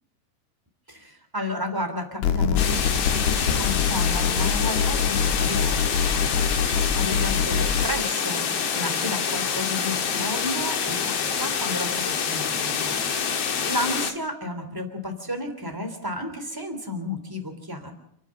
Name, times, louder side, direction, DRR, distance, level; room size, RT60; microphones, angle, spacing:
voice 1, 0.9-17.9, left 1 dB, 5° right, 6 dB, 2.2 m, -32 dB
sound 1, 2.2-7.9, left 6 dB, 75° left, 3.0 m, -24 dB
sound 2, 2.6-14.1, left 6 dB, 55° left, 1.9 m, -26 dB
29.0 x 10.0 x 8.8 m, 0.73 s
omnidirectional pair, 4.9 m